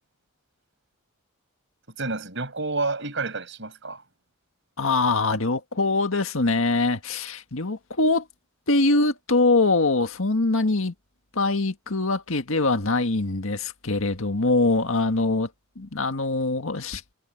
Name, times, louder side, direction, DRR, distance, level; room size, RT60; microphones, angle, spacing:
voice 1, 2.0-4.0, right 3 dB, 60° right, 6.4 m, -29 dB
voice 2, 4.8-8.3 8.7-10.9 11.4-15.5 15.8-17.1, left 3 dB, 70° left, 1.8 m, -23 dB
head